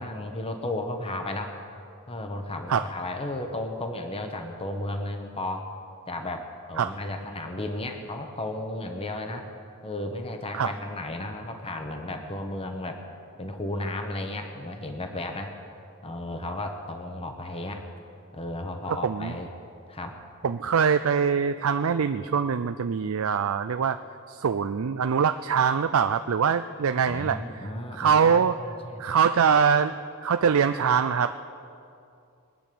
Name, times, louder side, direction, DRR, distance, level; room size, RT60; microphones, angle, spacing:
voice 1, 0.0-1.6 2.1-5.7 6.1-9.5 9.8-13.0 13.4-15.5 16.0-17.9 18.3-19.5 19.9-20.2 27.1-29.2, left 1 dB, 25° left, 5 dB, 1.1 m, -34 dB
voice 2, 18.9-19.3 20.4-24.0 24.3-28.6 29.0-31.4, right 6 dB, 70° right, 10 dB, 0.4 m, -23 dB
22.5 x 9.2 x 6.9 m, 2.6 s
head